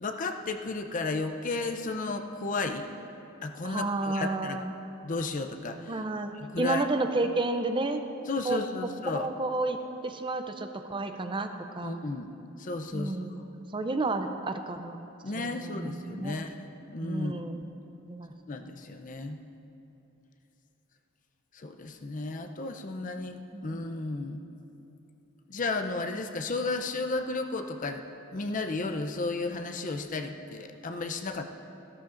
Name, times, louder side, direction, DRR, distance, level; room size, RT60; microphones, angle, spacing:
voice 1, 0.0-2.9 3.4-4.6 5.0-6.0 6.4-6.8 8.3-9.3 11.8-12.3 12.6-13.2 15.2-16.6 16.9-17.4 18.5-19.4 21.5-24.4 25.5-28.0 28.3-31.4, left 3 dB, 35° left, 6 dB, 0.6 m, -33 dB
voice 2, 3.6-4.7 5.9-8.0 8.4-8.6 9.1-11.5 11.7-12.0 12.9-15.0 15.3-16.5 17.0-17.6 18.1-18.3 23.5-23.7, right 2 dB, 25° right, 7 dB, 0.5 m, -31 dB
16.0 x 12.5 x 2.6 m, 2.9 s
head